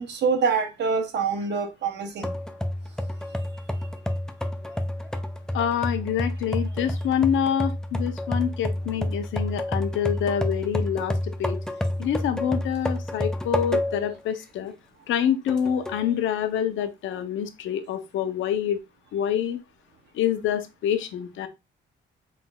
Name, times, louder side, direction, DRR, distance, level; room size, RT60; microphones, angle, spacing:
voice 1, 0.0-2.3, right 5 dB, 60° right, 0.8 m, -25 dB
sound 1, 2.2-14.2 14.6-14.7 15.5-16.1, left 1 dB, 5° left, 0.5 m, -29 dB
voice 2, 5.5-11.6 12.0-14.7 15.1-18.8 19.1-19.6 20.1-21.5, left 9 dB, 80° left, 0.7 m, -26 dB
4.0 x 3.8 x 2.3 m
cardioid pair, 90°, 20 cm